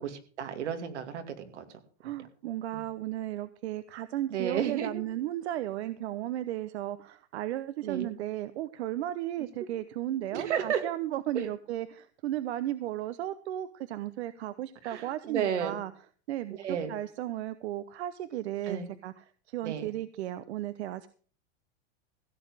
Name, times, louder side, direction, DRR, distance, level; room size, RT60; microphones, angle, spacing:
voice 1, 0.0-1.6 4.3-5.0 7.8-8.1 10.3-10.8 14.8-15.8 16.6-16.9 18.7-18.9 19.6-19.9, right 8 dB, 90° right, 7 dB, 2.5 m, -32 dB
voice 2, 2.0-15.9 16.3-21.1, right 13 dB, 70° right, 13 dB, 0.9 m, -35 dB
16.0 x 7.4 x 6.2 m, 0.41 s
supercardioid pair, 145°, 34 cm